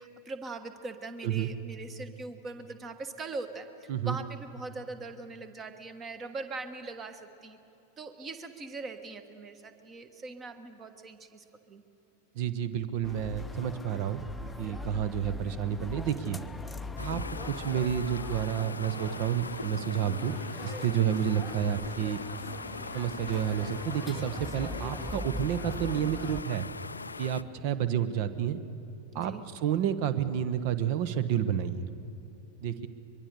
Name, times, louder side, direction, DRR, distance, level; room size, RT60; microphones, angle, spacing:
voice 1, 0.0-7.6 8.0-11.8 29.1-29.4, right 3 dB, 25° right, 9 dB, 1.5 m, -41 dB
voice 2, 12.3-14.2 14.6-16.4 17.0-20.4 20.6-22.2 22.9-26.7 27.2-28.6 29.1-31.9 32.6-32.9, right 9 dB, 45° right, 13 dB, 1.1 m, -30 dB
sound 1, 13.0-26.4, left 2 dB, 5° left, 0.7 m, -42 dB
sound 2, 17.0-27.4, left 4 dB, 80° left, 0.4 m, -41 dB
23.0 x 23.0 x 6.7 m, 2.8 s
figure-of-eight pair, 90°, 0 cm